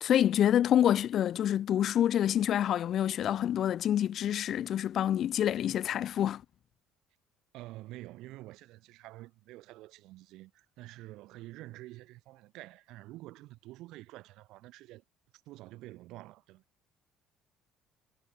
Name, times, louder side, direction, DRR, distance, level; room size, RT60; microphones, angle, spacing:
voice 1, 0.0-6.4, left 10 dB, 55° left, 0.4 m, -27 dB
voice 2, 7.5-15.0 15.5-16.6, right 17 dB, 70° right, 2.3 m, -48 dB
hypercardioid pair, 65°, 0 cm